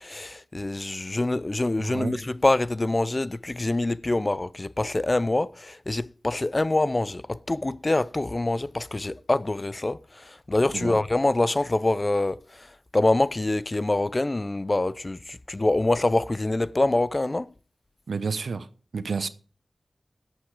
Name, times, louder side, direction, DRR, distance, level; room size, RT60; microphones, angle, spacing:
voice 1, 0.0-17.5, left 2 dB, 30° left, 0.5 m, -25 dB
voice 2, 1.8-2.2 10.7-11.0 18.1-18.7 18.9-19.3, right 5 dB, 90° right, 0.9 m, -30 dB
12.5 x 8.0 x 4.9 m
wide cardioid pair, 65°, 0 cm